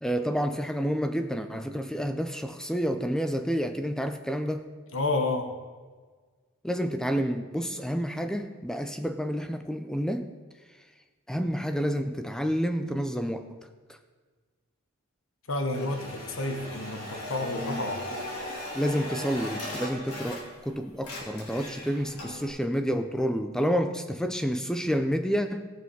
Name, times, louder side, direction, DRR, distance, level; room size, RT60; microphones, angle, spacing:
voice 1, 0.0-4.7 6.6-10.3 11.3-13.6 18.7-25.7, equal, 5° left, 8 dB, 0.4 m, -29 dB
voice 2, 4.9-5.5 15.5-18.1, left 2 dB, 65° left, 5 dB, 1.1 m, -30 dB
sound 1, 15.7-20.7 20.9-22.5, left 1 dB, 90° left, 2.9 m, -38 dB
17.5 x 6.1 x 5.4 m, 1.5 s
head